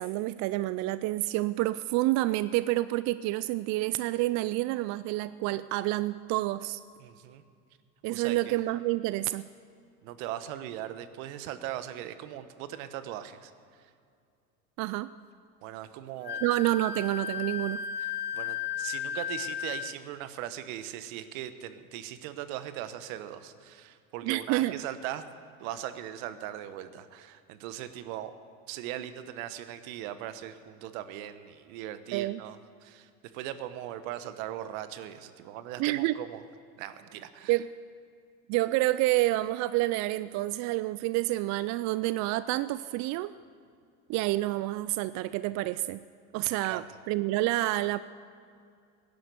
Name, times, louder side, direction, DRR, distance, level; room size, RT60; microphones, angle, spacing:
voice 1, 0.0-6.8 8.0-9.5 14.8-15.1 16.4-17.8 24.2-24.7 32.1-32.4 35.8-36.2 37.5-37.7 38.5-43.3 44.1-46.0 46.3-48.0, right 17 dB, 40° right, 15 dB, 0.4 m, -28 dB
voice 2, 7.0-7.4 8.1-8.6 10.0-13.5 15.6-16.4 18.3-25.2 25.6-28.3 28.7-36.4 36.8-37.6 46.6-46.8, right 12 dB, 65° right, 11 dB, 1.2 m, -39 dB
Wind instrument woodwind instrument, 16.2-20.0, left 8 dB, 25° left, 0.6 m, -35 dB
17.5 x 10.5 x 6.8 m, 2.3 s
hypercardioid pair, 95°, 44 cm